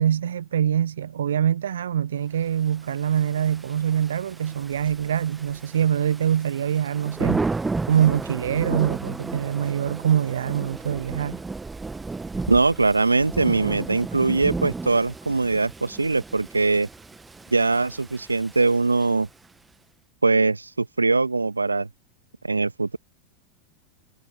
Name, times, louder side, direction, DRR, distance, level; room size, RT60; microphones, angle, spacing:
voice 1, 0.0-7.5 7.9-11.4, right 9 dB, 70° right, 0.4 m, -24 dB
Thunder / Rain, 2.9-19.5, right 3 dB, 10° right, 1.2 m, -34 dB
voice 2, 12.5-16.9 17.5-19.3 20.2-21.9 22.4-23.0, right 3 dB, 85° right, 1.4 m, -21 dB
figure-of-eight pair, 90°, 0 cm